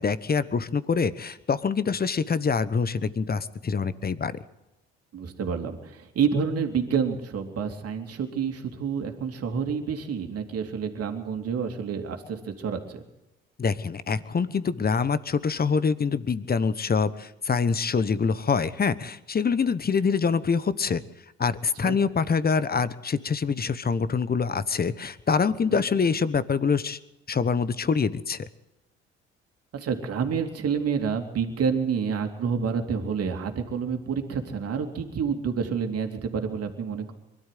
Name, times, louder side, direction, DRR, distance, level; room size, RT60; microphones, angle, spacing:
voice 1, 0.0-4.4 13.6-21.0 21.4-27.0 27.3-28.5, left 5 dB, 30° left, 16 dB, 1.2 m, -25 dB
voice 2, 5.1-13.0 21.8-22.0 25.6-25.8 29.7-37.1, right 6 dB, 55° right, 5 dB, 3.0 m, -28 dB
22.5 x 13.0 x 9.3 m, 0.94 s
hypercardioid pair, 60°, 29 cm